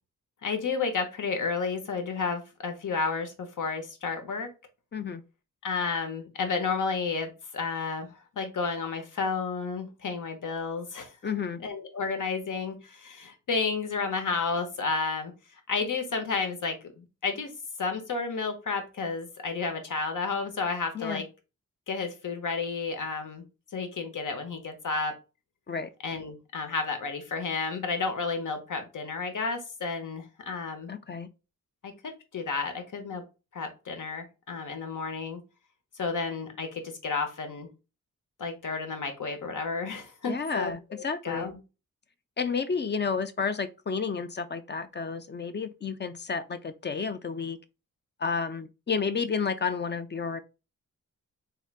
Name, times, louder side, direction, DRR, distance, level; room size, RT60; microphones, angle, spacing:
voice 1, 0.4-4.5 5.6-11.1 11.6-15.3 15.7-17.5 17.8-21.3 21.9-23.4 23.7-25.2 26.0-30.9 31.8-33.2 33.5-35.4 35.9-37.7 38.4-40.7 41.2-41.6, left 4 dB, 70° left, 1.0 m, -31 dB
voice 2, 4.9-5.2 11.2-11.6 20.9-21.2 25.7-25.9 30.9-31.3 40.3-41.5 42.4-47.6 48.2-50.4, left 5 dB, 35° left, 0.4 m, -31 dB
3.6 x 3.3 x 2.4 m
cardioid pair, 75°, 32 cm